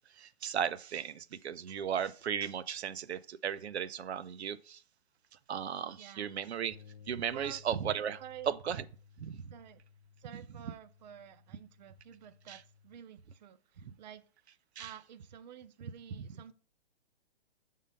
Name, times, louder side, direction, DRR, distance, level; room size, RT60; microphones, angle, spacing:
voice 1, 0.1-4.8 5.5-6.8 7.1-8.8 9.2-9.5 12.5-12.6 13.8-13.9 14.8-14.9 16.2-16.3, right 8 dB, 90° right, 0.6 m, -36 dB
voice 2, 6.0-6.3 7.3-7.6 8.2-8.6 9.5-9.8 10.2-14.3 14.8-16.5, right 10 dB, 45° right, 0.6 m, -50 dB
sound 1, 6.7-13.0, left 6 dB, 55° left, 0.6 m, -59 dB
6.4 x 3.7 x 5.4 m
hypercardioid pair, 155°, 32 cm